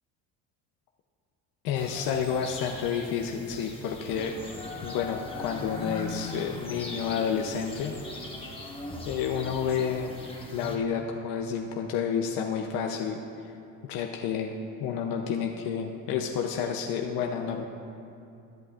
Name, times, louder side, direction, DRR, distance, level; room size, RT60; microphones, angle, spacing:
voice 1, 1.6-4.3 4.8-7.9 8.4-8.7 9.0-10.1 10.5-13.2 13.9-17.6, left 7 dB, 80° left, 1 dB, 0.8 m, -30 dB
sound 1, 1.7-10.8, left 2 dB, 15° left, 1.4 m, -40 dB
21.0 x 8.4 x 2.5 m, 2.6 s
cardioid pair, 110°, 35 cm